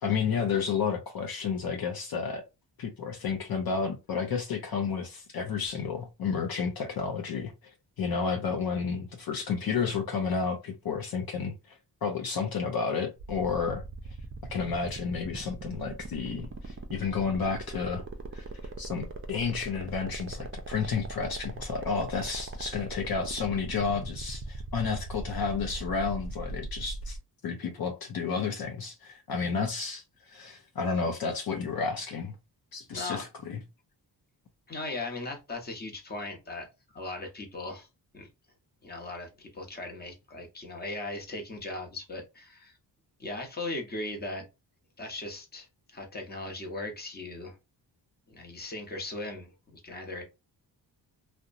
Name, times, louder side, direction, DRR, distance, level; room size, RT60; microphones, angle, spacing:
voice 1, 0.0-2.4 2.8-13.8 14.5-18.0 18.3-18.4 18.8-27.2 27.4-32.4 32.7-33.6, left 5 dB, 55° left, 0.6 m, -31 dB
sound 1, 13.2-27.2, right 3 dB, 30° right, 0.5 m, -40 dB
voice 2, 32.9-33.3 34.7-36.7 36.9-37.9 38.1-38.3 38.8-42.8 43.2-44.4 45.0-47.6 48.3-50.2, left 2 dB, 20° left, 0.8 m, -38 dB
2.8 x 2.1 x 2.5 m
cardioid pair, 110°, 43 cm